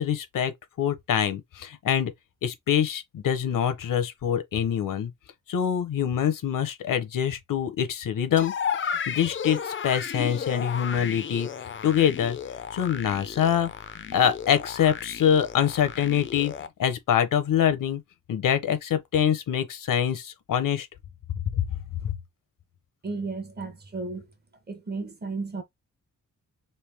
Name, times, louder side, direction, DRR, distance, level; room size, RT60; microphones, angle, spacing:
voice 1, 0.0-2.1 2.4-5.1 5.5-8.5 8.8-11.5 11.8-12.4 12.7-13.7 14.1-16.5 16.8-18.0 18.3-20.9 21.6-21.7 22.0-22.1, left 9 dB, 75° left, 0.7 m, -25 dB
sound 1, 8.4-16.7, left 7 dB, 40° left, 0.4 m, -34 dB
voice 2, 23.0-24.3 24.7-25.6, right 3 dB, 30° right, 0.8 m, -33 dB
3.3 x 2.6 x 3.3 m
wide cardioid pair, 160°, 32 cm